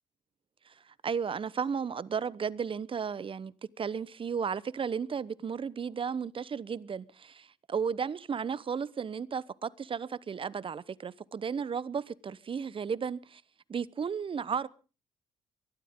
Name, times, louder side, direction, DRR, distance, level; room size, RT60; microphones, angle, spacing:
voice 1, 0.7-13.4 13.7-14.7, right 6 dB, 40° right, 0.9 m, -34 dB
23.0 x 13.0 x 3.7 m
supercardioid pair, 60°, 14 cm